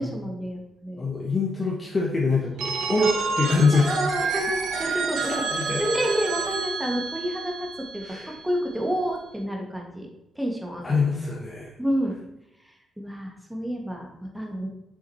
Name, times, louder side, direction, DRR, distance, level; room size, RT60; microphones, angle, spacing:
voice 1, 0.0-1.0 3.0-3.1 3.7-5.3 5.8-7.7 7.9-10.1 10.3-11.0 11.8-12.1 13.0-14.7, equal, 5° right, 1 dB, 1.4 m, -29 dB
voice 2, 1.0-3.9 4.8-5.9 8.0-8.3 10.8-11.7, left 4 dB, 25° left, -3 dB, 1.1 m, -25 dB
Telephone, 2.6-8.4, right 5 dB, 80° right, 1.1 m, -29 dB
7.0 x 6.3 x 4.3 m, 0.85 s
cardioid pair, 155°, 0 cm